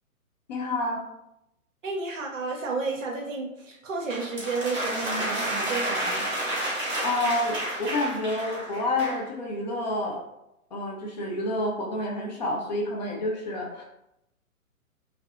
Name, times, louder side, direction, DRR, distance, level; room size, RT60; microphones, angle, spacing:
voice 1, 0.5-1.0 7.0-10.2 10.7-13.8, left 1 dB, 30° left, -1 dB, 0.5 m, -29 dB
voice 2, 1.8-6.3, right 3 dB, 60° right, 0 dB, 0.6 m, -32 dB
sound 1, 4.1-9.3, right 1 dB, 10° right, 0.8 m, -30 dB
2.6 x 2.3 x 2.4 m, 0.85 s
figure-of-eight pair, 125°, 43 cm